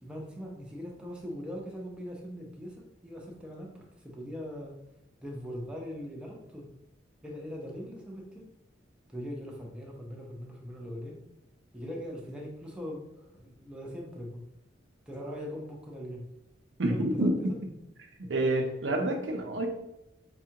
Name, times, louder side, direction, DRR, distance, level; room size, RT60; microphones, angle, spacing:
voice 1, 0.0-4.8 5.2-6.7 7.2-8.5 9.1-11.2 11.7-14.4 15.1-16.2 16.8-17.6, equal, 5° right, -2 dB, 0.7 m, -41 dB
voice 2, 16.8-17.3 18.2-19.7, right 1 dB, 80° right, 3 dB, 0.7 m, -28 dB
5.3 x 2.4 x 2.8 m, 0.90 s
head